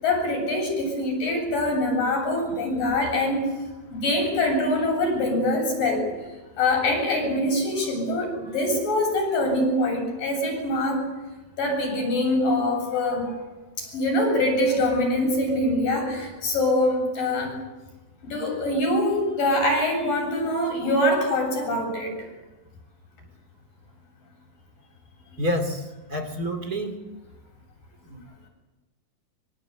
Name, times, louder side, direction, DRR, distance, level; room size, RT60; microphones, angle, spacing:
voice 1, 0.0-3.4 3.9-6.1 6.6-11.1 11.6-13.4 13.8-17.5 18.2-22.1, left 1 dB, 70° left, 2 dB, 9.3 m, -24 dB
voice 2, 25.4-27.0 28.0-28.2, equal, 30° right, 6 dB, 2.8 m, -28 dB
25.0 x 23.5 x 8.3 m, 1.1 s
omnidirectional pair, 4.0 m